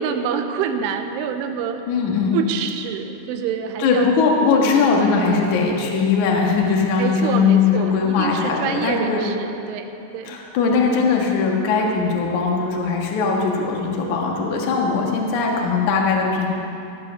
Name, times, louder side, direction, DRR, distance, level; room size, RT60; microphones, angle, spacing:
voice 1, 0.0-1.8 2.3-4.1 4.5-4.9 7.0-10.4, right 7 dB, 85° right, 7 dB, 3.3 m, -26 dB
voice 2, 1.9-2.4 3.8-9.2 10.3-16.5, left 5 dB, 65° left, -1 dB, 2.0 m, -20 dB
17.5 x 7.8 x 6.9 m, 2.8 s
omnidirectional pair, 5.6 m